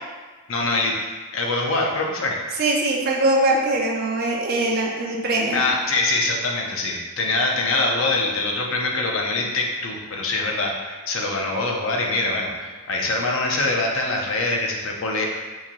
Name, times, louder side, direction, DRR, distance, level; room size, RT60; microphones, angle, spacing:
voice 1, 0.5-1.0 1.3-2.5 5.5-15.3, left 2 dB, 65° left, 0 dB, 0.5 m, -24 dB
voice 2, 2.6-5.6, right 2 dB, 45° right, -1 dB, 0.5 m, -22 dB
2.9 x 2.6 x 3.8 m, 1.3 s
head